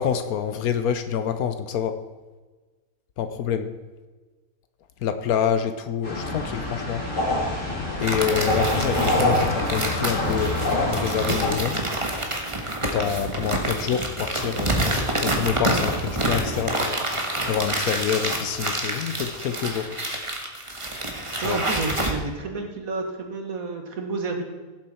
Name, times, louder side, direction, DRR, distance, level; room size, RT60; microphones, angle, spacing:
voice 1, 0.0-2.0 3.2-3.7 5.0-7.0 8.0-11.8 12.8-17.0 17.5-19.9 21.4-21.6, left 8 dB, 80° left, 9 dB, 1.2 m, -27 dB
sound 1, 6.0-11.6, left 1 dB, 55° left, 3.1 m, -25 dB
sound 2, 8.0-22.1, right 1 dB, 20° right, 1.4 m, -28 dB
voice 2, 21.4-24.4, right 3 dB, 70° right, 3 dB, 1.9 m, -30 dB
16.5 x 7.6 x 4.3 m, 1.3 s
omnidirectional pair, 1.5 m